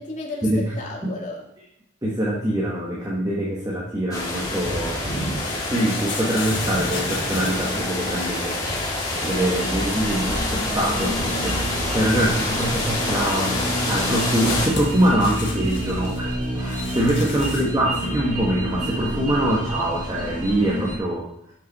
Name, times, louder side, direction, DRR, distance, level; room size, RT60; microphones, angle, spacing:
voice 1, 0.0-1.4 17.3-18.2, left 2 dB, 40° left, -2 dB, 2.1 m, -35 dB
voice 2, 2.0-5.0 5.7-8.6 9.2-13.6 13.8-21.3, right 1 dB, 20° right, -4 dB, 1.3 m, -24 dB
sound 1, 4.1-14.7, left 1 dB, 20° left, 2.1 m, -27 dB
sound 2, 4.8-17.6, left 4 dB, 70° left, 3.8 m, -37 dB
sound 3, 9.2-21.0, equal, 40° right, 1.9 m, -29 dB
11.5 x 6.0 x 4.1 m, 0.75 s
head